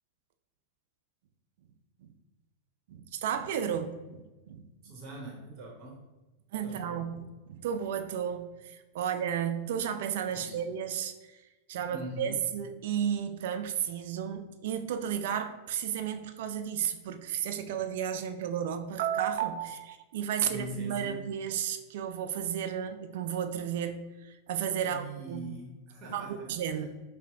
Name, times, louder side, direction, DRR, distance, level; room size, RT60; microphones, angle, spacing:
voice 1, 2.9-4.9 6.5-7.2 7.5-11.1 11.7-25.5 26.1-26.9, right 9 dB, 55° right, 8 dB, 0.3 m, -33 dB
voice 2, 4.8-6.0 6.6-7.0 8.9-9.1 10.3-10.6 11.9-12.5 20.5-21.3 24.8-26.5 26.8-26.9, right 1 dB, 40° right, -1 dB, 1.1 m, -42 dB
5.6 x 2.1 x 2.7 m, 1.1 s
figure-of-eight pair, 90°, 0 cm